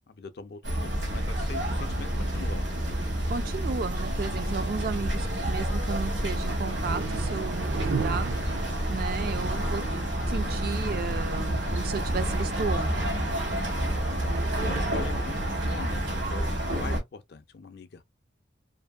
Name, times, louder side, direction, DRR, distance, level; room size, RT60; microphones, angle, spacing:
voice 1, 0.1-2.7 14.2-14.4 14.7-18.0, left 4 dB, 50° left, 0.4 m, -43 dB
sound 1, 0.6-17.0, right 1 dB, 65° right, 1.0 m, -29 dB
sound 2, 1.1-14.8, right 3 dB, 80° right, 0.7 m, -39 dB
voice 2, 3.3-8.3 8.9-9.8 10.3-13.2 14.3-14.5, right 5 dB, 50° right, 0.3 m, -34 dB
2.6 x 2.6 x 2.2 m
head